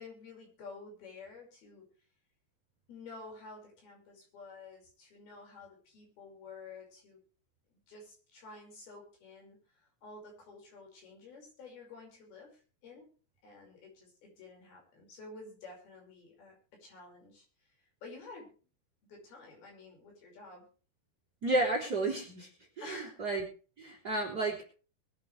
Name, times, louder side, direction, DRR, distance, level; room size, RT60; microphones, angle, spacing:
voice 1, 0.0-1.9 2.9-7.2 7.7-13.1 13.4-18.5 19.0-20.7 22.8-23.2 23.8-24.1, left 3 dB, 65° left, 1 dB, 7.2 m, -51 dB
voice 2, 21.4-22.5 22.8-23.4 23.8-24.6, right 2 dB, 25° right, 1 dB, 3.6 m, -32 dB
22.5 x 9.3 x 3.3 m, 0.37 s
omnidirectional pair, 4.6 m